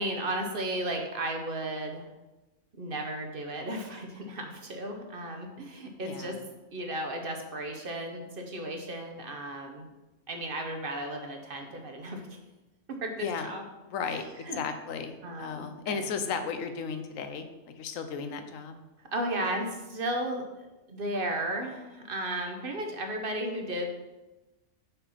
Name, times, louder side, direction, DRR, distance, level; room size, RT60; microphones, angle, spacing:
voice 1, 0.0-2.1 2.8-6.4 6.7-9.9 10.3-12.2 12.9-13.6 14.1-14.2 14.5-14.6 15.2-16.0 19.1-23.9, right 1 dB, 50° right, 3 dB, 0.9 m, -34 dB
voice 2, 6.0-6.4 13.2-13.5 13.9-18.8, left 6 dB, 90° left, 8 dB, 1.1 m, -35 dB
5.8 x 5.5 x 4.1 m, 1.1 s
omnidirectional pair, 1.3 m